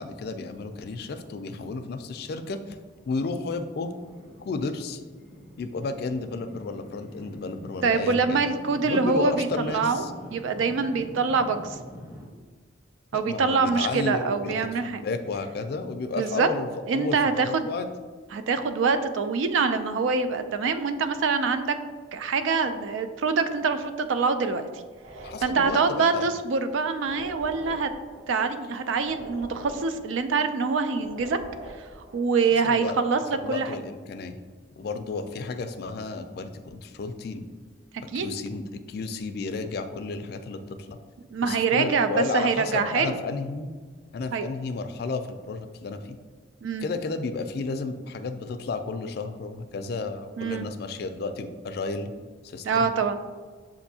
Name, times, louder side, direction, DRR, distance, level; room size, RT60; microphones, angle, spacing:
voice 1, 0.0-2.8 3.1-3.9 4.4-5.0 5.6-8.4 8.8-10.1 13.1-14.6 14.8-17.9 25.2-26.3 32.6-32.9 33.4-34.4 34.8-37.5 38.1-41.0 41.4-43.7 44.1-46.2 46.8-52.1 52.4-52.9, left 3 dB, 55° left, 8 dB, 0.3 m, -32 dB
sound 1, 0.8-12.3, equal, 5° right, 0.6 m, -46 dB
voice 2, 7.8-10.0 10.3-11.8 13.1-15.0 16.2-16.5 16.9-17.7 18.3-21.8 22.1-24.7 25.4-27.9 28.3-31.4 31.8-31.9 32.1-33.7 38.1-38.3 41.3-43.2 44.3-44.5 46.6-46.9 50.4-50.7 52.6-53.2, right 5 dB, 80° right, 9 dB, 0.4 m, -25 dB
sound 2, 24.9-32.3, right 1 dB, 60° right, 1.3 m, -44 dB
6.9 x 2.6 x 2.7 m, 1.4 s
head